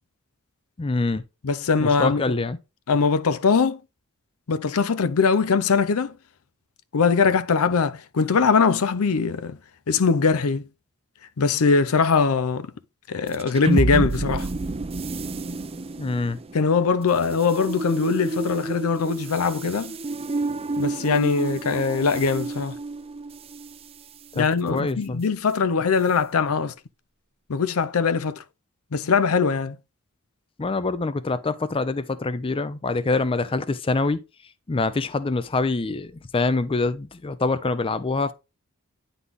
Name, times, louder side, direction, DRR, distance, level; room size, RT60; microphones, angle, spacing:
voice 1, 0.8-1.2 1.8-2.6 16.0-16.4 24.3-25.2 30.6-34.2 34.7-38.3, left 3 dB, 25° left, 0.4 m, -25 dB
voice 2, 1.4-2.2 2.9-3.8 4.5-6.1 6.9-9.6 9.9-10.6 11.4-12.7 13.1-14.5 16.5-19.9 20.8-22.8 24.3-26.7 27.5-28.4 28.9-29.8, left 5 dB, 75° left, 0.6 m, -21 dB
sound 1, 13.3-23.8, right 2 dB, 25° right, 0.5 m, -29 dB
9.5 x 4.0 x 3.5 m
head